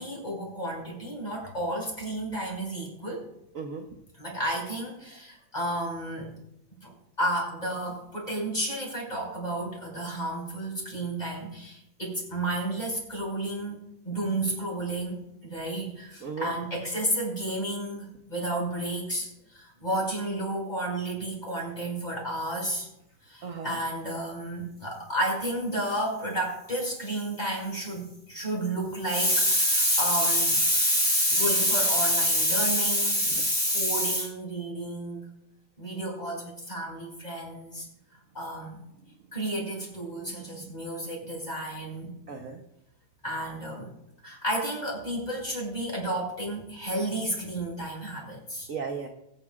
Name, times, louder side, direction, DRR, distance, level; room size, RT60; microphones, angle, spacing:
voice 1, 0.0-3.3 4.2-6.3 6.8-15.2 15.4-22.9 23.2-35.3 35.8-37.9 38.3-38.8 39.3-42.2 43.2-43.9 44.2-48.7, equal, 20° left, -2 dB, 5.5 m, -30 dB
voice 2, 3.5-3.9 16.2-16.5 23.4-23.8 33.2-33.4 40.2-40.8 42.3-42.6 48.7-49.1, right 5 dB, 50° right, 3 dB, 1.2 m, -36 dB
23.5 x 9.8 x 2.4 m, 0.80 s
omnidirectional pair, 2.2 m